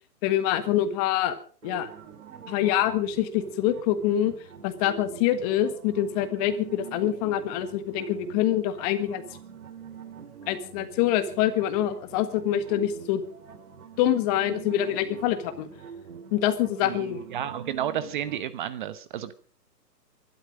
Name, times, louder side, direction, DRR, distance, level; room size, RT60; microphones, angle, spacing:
voice 1, 0.2-1.4 1.6-1.9 2.5-4.3 4.6-9.2 10.5-13.2 14.0-15.7 16.3-17.2, left 11 dB, 25° left, 11 dB, 1.4 m, -25 dB
sound 1, 1.6-18.4, right 7 dB, 60° right, 3.0 m, -45 dB
voice 2, 16.8-19.3, right 10 dB, 30° right, 13 dB, 0.9 m, -32 dB
22.5 x 12.0 x 5.1 m, 0.43 s
hypercardioid pair, 145°, 48 cm